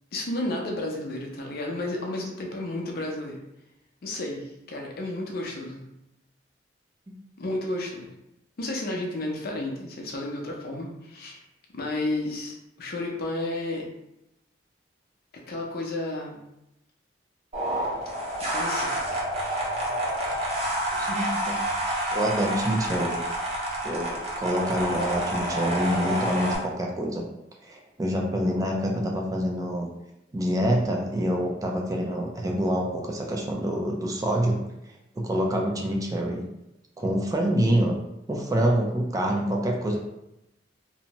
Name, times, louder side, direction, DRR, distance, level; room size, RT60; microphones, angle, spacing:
voice 1, 0.1-3.4 4.0-5.8 7.4-8.1 8.6-11.4 11.7-13.9 15.5-16.5 18.4-19.3, left 1 dB, 55° left, 0 dB, 0.5 m, -32 dB
sound 1, 17.5-26.6, right 1 dB, 35° right, 0.7 m, -28 dB
voice 2, 20.9-21.6 22.1-23.2 23.8-27.3 27.6-29.9 30.3-34.6 35.2-36.4 37.0-38.0 38.3-40.0, equal, 20° right, 0 dB, 0.3 m, -26 dB
2.7 x 2.1 x 2.9 m, 0.88 s
head